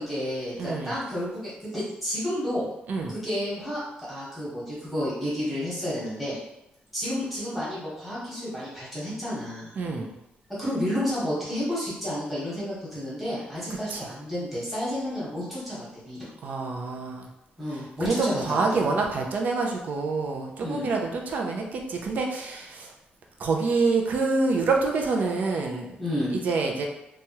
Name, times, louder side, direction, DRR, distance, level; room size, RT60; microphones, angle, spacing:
voice 1, 0.0-2.7 3.1-6.4 6.9-9.7 10.6-16.3 17.6-18.9 20.6-20.9 26.0-26.4, equal, ahead, -10 dB, 1.2 m, -31 dB
voice 2, 0.6-0.9 2.9-3.1 9.8-10.1 13.9-14.0 16.4-17.3 17.7-22.9 23.4-25.9 26.3-26.9, right 3 dB, 55° right, 1 dB, 0.5 m, -27 dB
3.0 x 2.3 x 2.8 m, 0.88 s
wide cardioid pair, 165°, 3 cm